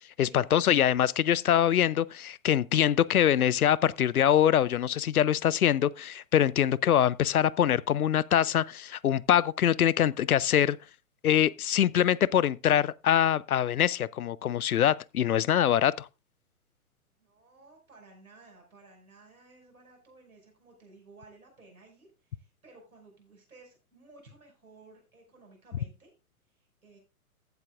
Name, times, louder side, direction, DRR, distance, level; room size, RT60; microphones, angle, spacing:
voice 1, 0.2-10.8 11.2-16.1, left 10 dB, 80° left, 0.5 m, -24 dB
voice 2, 17.2-26.1 26.5-27.0, right 3 dB, 75° right, 5.6 m, -56 dB
15.0 x 8.3 x 2.4 m
figure-of-eight pair, 115°, 43 cm